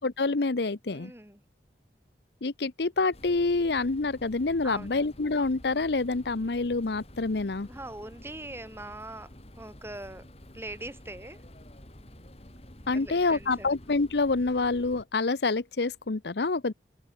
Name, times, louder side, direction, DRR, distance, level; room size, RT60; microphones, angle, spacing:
voice 1, 0.0-1.1 2.4-7.7 12.9-16.7, left 3 dB, 70° left, 0.8 m, -27 dB
voice 2, 0.9-1.4 4.6-5.1 7.7-10.3 10.5-11.4 12.9-13.7, right 2 dB, 15° right, 5.0 m, -42 dB
sound 1, 3.1-15.0, left 1 dB, 35° left, 2.9 m, -49 dB
head